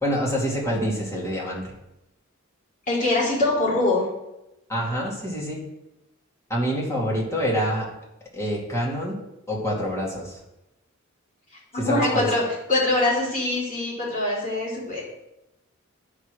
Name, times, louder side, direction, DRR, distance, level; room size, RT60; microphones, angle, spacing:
voice 1, 0.0-1.7 4.7-5.6 6.5-7.9 8.3-9.2 9.5-10.4 11.7-12.3, equal, 15° left, -3 dB, 2.3 m, -26 dB
voice 2, 2.9-4.1 11.7-12.4 12.7-15.0, left 2 dB, 40° left, -5 dB, 3.6 m, -23 dB
9.7 x 4.9 x 6.2 m, 0.91 s
head